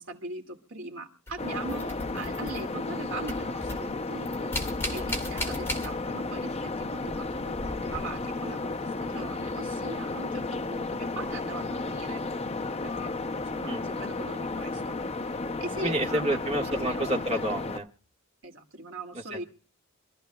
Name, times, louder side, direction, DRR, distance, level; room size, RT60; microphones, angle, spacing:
voice 1, 0.0-4.5 4.9-12.2 12.8-15.0 15.6-17.2 18.4-19.4, right 2 dB, 60° right, 3 dB, 2.3 m, -40 dB
sound 1, 1.3-2.9 3.2-6.4 6.6-8.4 10.3-10.4 11.2-11.4, left 1 dB, 10° left, 2.6 m, -37 dB
sound 2, 1.4-17.8, left 3 dB, 30° left, 0.6 m, -33 dB
voice 2, 15.8-17.9 19.1-19.4, right 1 dB, 30° right, 1 dB, 1.7 m, -29 dB
26.5 x 13.5 x 2.3 m, 0.37 s
head